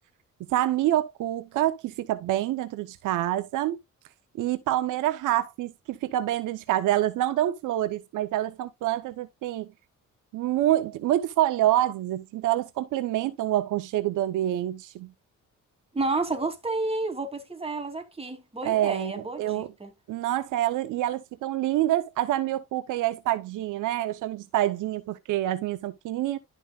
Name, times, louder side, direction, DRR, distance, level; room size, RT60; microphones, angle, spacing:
voice 1, 0.5-3.8 4.4-9.7 10.3-15.1 18.6-19.7 20.1-26.4, right 13 dB, 85° right, 0.9 m, -27 dB
voice 2, 15.9-19.9, right 3 dB, 20° right, 3.0 m, -31 dB
12.0 x 5.5 x 2.4 m
cardioid pair, 90°, 30 cm